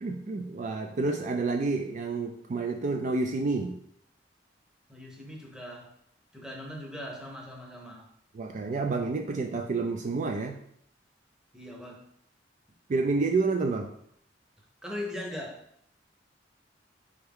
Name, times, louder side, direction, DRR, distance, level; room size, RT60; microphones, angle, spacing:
voice 1, 0.0-3.8 8.3-10.6 12.9-13.9, right 3 dB, 45° right, 4 dB, 0.3 m, -29 dB
voice 2, 4.9-5.9 6.3-8.1 11.5-12.0 14.8-15.7, left 1 dB, 5° right, -1 dB, 0.8 m, -40 dB
4.4 x 3.4 x 3.5 m, 0.70 s
head